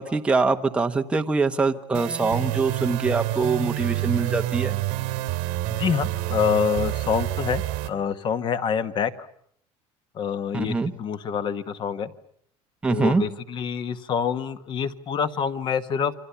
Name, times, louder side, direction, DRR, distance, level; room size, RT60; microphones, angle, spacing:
voice 1, 0.0-4.8 10.5-10.9 12.8-13.2, right 4 dB, 10° right, 5 dB, 1.1 m, -24 dB
sound 1, 1.9-7.9, right 15 dB, 65° right, 2.6 m, -28 dB
voice 2, 5.7-9.1 10.1-12.1 12.9-16.1, left 7 dB, 30° left, 12 dB, 1.2 m, -26 dB
28.5 x 25.5 x 7.0 m, 0.67 s
cardioid pair, 175°, 15 cm